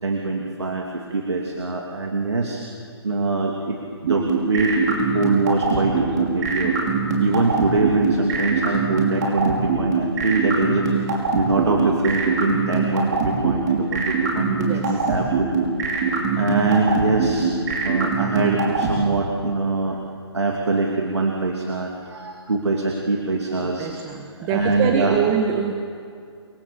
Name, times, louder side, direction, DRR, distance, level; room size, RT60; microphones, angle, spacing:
voice 1, 0.0-2.6 3.0-3.8 4.0-6.7 7.2-15.5 16.0-16.1 16.4-17.5 17.8-20.0 20.3-23.9 24.4-25.2, right 3 dB, 75° right, 1 dB, 2.8 m, -23 dB
sound 1, 4.1-18.9, right 5 dB, 40° right, 5.6 m, -22 dB
voice 2, 14.6-15.0 23.6-25.8, right 7 dB, 25° right, 5 dB, 1.6 m, -24 dB
29.0 x 22.5 x 7.1 m, 2.3 s
figure-of-eight pair, 135°, 14 cm